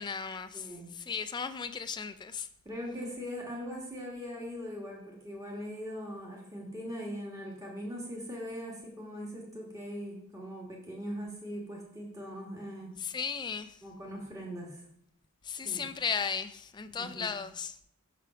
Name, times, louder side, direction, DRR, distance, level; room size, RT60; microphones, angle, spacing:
voice 1, 0.0-2.5 13.0-13.8 15.4-17.8, left 6 dB, 20° left, 0.3 m, -36 dB
voice 2, 0.5-0.9 2.6-12.9 13.8-14.8 15.5-15.9 17.0-17.3, equal, 15° right, 1.4 m, -41 dB
6.7 x 4.8 x 5.0 m
head